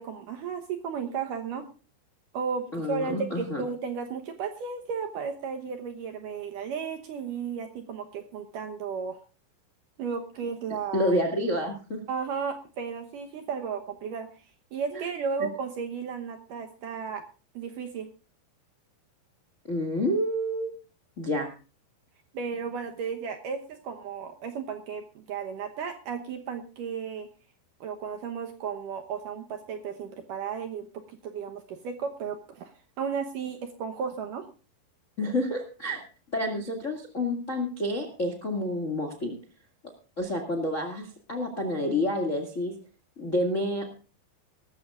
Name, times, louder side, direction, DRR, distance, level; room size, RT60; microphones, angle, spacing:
voice 1, 0.0-1.7 2.3-9.2 10.0-11.1 12.1-14.5 14.7-17.2 17.5-18.1 22.3-27.3 27.8-34.4, right 6 dB, 75° right, 5 dB, 2.0 m, -34 dB
voice 2, 2.7-3.6 10.9-12.0 14.9-15.0 19.7-20.7 21.2-21.5 35.2-36.0 36.3-39.3 40.2-42.7 43.2-43.9, left 1 dB, 35° left, 4 dB, 1.3 m, -29 dB
19.5 x 14.0 x 2.5 m, 0.35 s
omnidirectional pair, 5.3 m